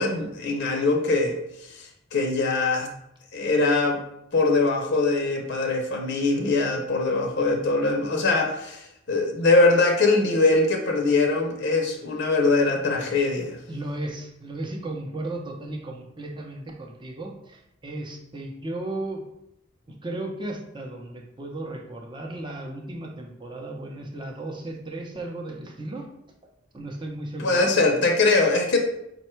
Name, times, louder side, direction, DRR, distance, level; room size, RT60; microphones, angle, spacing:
voice 1, 0.0-2.9 3.3-4.0 4.3-13.6 27.4-28.8, left 3 dB, 60° left, 2 dB, 0.6 m, -22 dB
voice 2, 13.7-19.2 19.9-26.1 26.7-27.7, right 2 dB, 25° right, 1 dB, 0.6 m, -35 dB
5.3 x 2.3 x 4.3 m, 0.81 s
head